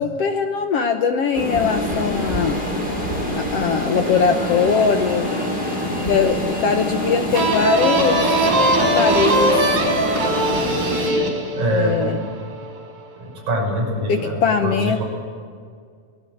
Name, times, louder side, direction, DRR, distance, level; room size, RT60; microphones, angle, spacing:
voice 1, 0.0-2.6 3.3-5.3 6.0-8.2 8.8-9.8 11.7-12.2 14.1-15.0, left 6 dB, 70° left, 6 dB, 1.5 m, -21 dB
sound 1, 1.3-11.1, left 1 dB, 15° left, 4.6 m, -25 dB
sound 2, 7.3-12.8, right 1 dB, 90° right, 6.0 m, -20 dB
voice 2, 11.5-12.2 13.2-15.0, right 1 dB, 55° right, -2 dB, 7.4 m, -24 dB
24.0 x 19.0 x 7.9 m, 2.1 s
omnidirectional pair, 4.0 m